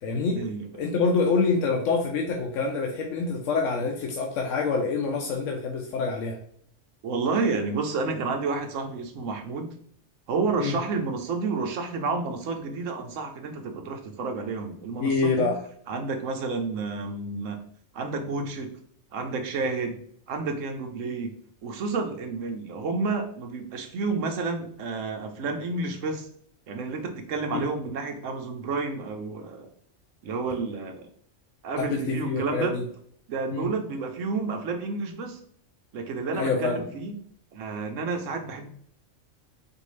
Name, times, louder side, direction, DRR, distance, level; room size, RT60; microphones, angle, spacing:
voice 1, 0.0-0.4 0.7-6.4 10.6-10.7 15.0-15.5 27.5-27.6 31.8-32.8 33.5-33.7 36.3-36.8, left 4 dB, 85° left, 1 dB, 1.0 m, -26 dB
voice 2, 7.0-9.7 10.3-15.5 15.9-17.6 17.9-18.8 19.1-20.0 20.3-21.3 21.6-26.3 26.7-29.7 30.2-31.1 31.6-32.8 33.3-35.4 35.9-37.1 37.5-38.7, right 4 dB, 85° right, 5 dB, 1.1 m, -30 dB
4.6 x 2.7 x 3.1 m, 0.62 s
omnidirectional pair, 1.3 m